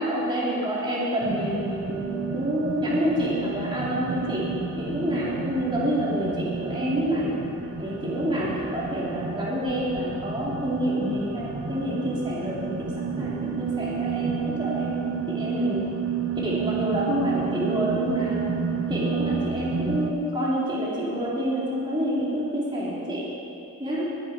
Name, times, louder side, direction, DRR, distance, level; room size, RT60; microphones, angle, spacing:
voice 1, 0.0-4.5 4.8-7.3 7.8-12.9 13.2-15.9 16.4-23.3 23.8-24.0, equal, 20° right, -6 dB, 2.5 m, -28 dB
sound 1, 1.2-20.1, right 6 dB, 60° right, 0.6 m, -31 dB
19.5 x 7.4 x 4.7 m, 2.8 s
head